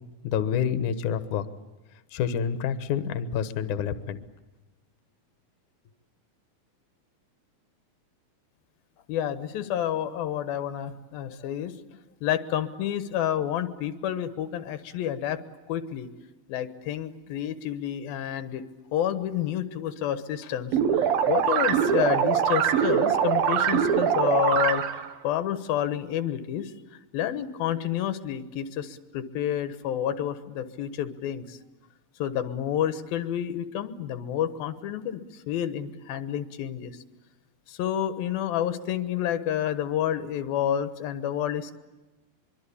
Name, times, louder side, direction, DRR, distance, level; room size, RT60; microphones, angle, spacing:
voice 1, 0.2-1.5 2.1-4.2, left 8 dB, 65° left, 11 dB, 2.5 m, -28 dB
voice 2, 9.1-11.7 12.2-15.4 15.7-16.1 16.5-18.6 18.9-24.8 25.2-26.7 27.1-31.6 32.2-37.0 37.7-41.8, left 10 dB, 90° left, 11 dB, 3.1 m, -29 dB
sound 1, 20.7-25.1, right 8 dB, 80° right, 3.3 m, -23 dB
24.0 x 24.0 x 8.5 m, 1.1 s
omnidirectional pair, 4.1 m